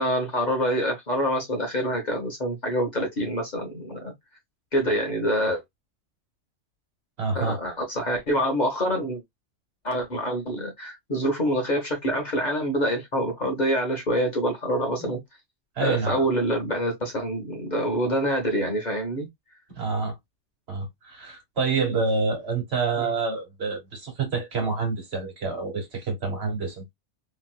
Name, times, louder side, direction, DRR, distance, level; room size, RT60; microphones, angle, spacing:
voice 1, 0.0-4.1 4.7-5.6 7.3-9.2 9.8-15.2 15.8-19.3 23.0-23.1, equal, 40° left, 0.9 m, -26 dB
voice 2, 7.2-7.6 15.0-15.1 15.7-16.2 19.7-20.2 20.7-26.9, right 4 dB, 60° right, 1.5 m, -27 dB
2.9 x 2.9 x 2.2 m
omnidirectional pair, 1.3 m